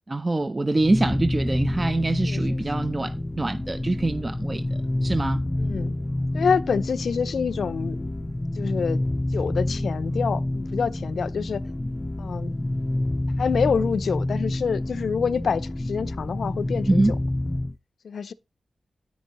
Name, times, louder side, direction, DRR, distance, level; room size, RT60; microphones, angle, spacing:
voice 1, 0.1-5.4 16.9-17.1, right 2 dB, 30° right, 0.5 m, -25 dB
sound 1, 0.7-17.8, left 1 dB, 20° left, 0.5 m, -28 dB
voice 2, 2.2-2.6 5.6-6.0 6.3-8.1 8.6-9.0 9.3-11.6 12.2-12.5 13.4-15.6 15.9-17.0 18.0-18.3, left 6 dB, 80° left, 0.5 m, -26 dB
9.4 x 9.2 x 3.0 m
cardioid pair, 55°, 0 cm